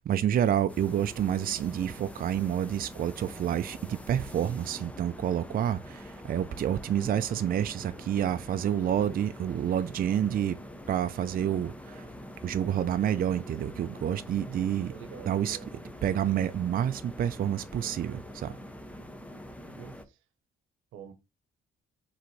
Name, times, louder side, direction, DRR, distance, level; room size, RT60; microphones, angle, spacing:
voice 1, 0.0-10.6 10.9-12.1 12.4-14.9 15.2-15.6 16.0-18.6, right 10 dB, 45° right, 0.5 m, -29 dB
sound 1, 0.7-20.0, left 1 dB, 5° left, 0.8 m, -45 dB
voice 2, 14.9-15.7 19.8-20.2 20.9-21.1, right 8 dB, 85° right, 0.8 m, -46 dB
4.8 x 3.5 x 3.1 m
cardioid pair, 90°, 20 cm